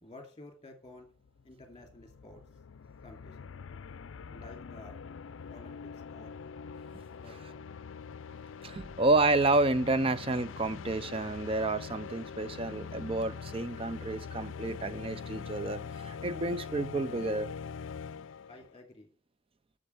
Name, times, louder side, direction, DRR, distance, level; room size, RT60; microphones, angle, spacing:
voice 1, 0.0-1.1 1.4-2.4 3.0-3.5 4.3-5.0 5.5-6.4 7.1-7.6 18.5-19.1, left 2 dB, 25° left, 2.5 m, -52 dB
sound 1, 1.0-1.1 1.3-18.7, left 6 dB, 80° left, 0.5 m, -43 dB
voice 2, 8.6-17.5, right 2 dB, 30° right, 0.6 m, -30 dB
7.9 x 7.3 x 8.2 m
head